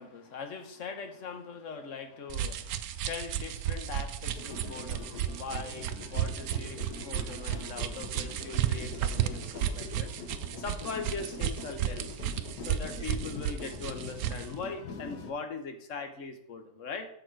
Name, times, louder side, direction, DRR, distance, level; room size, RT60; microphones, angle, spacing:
voice 1, 0.0-10.1 10.6-12.1 12.6-17.1, left 4 dB, 55° left, 6 dB, 1.3 m, -41 dB
sound 1, 2.3-14.5, right 10 dB, 75° right, 1.0 m, -33 dB
sound 2, 4.3-15.3, left 5 dB, 85° left, 1.5 m, -44 dB
6.6 x 6.4 x 4.5 m, 0.72 s
omnidirectional pair, 1.7 m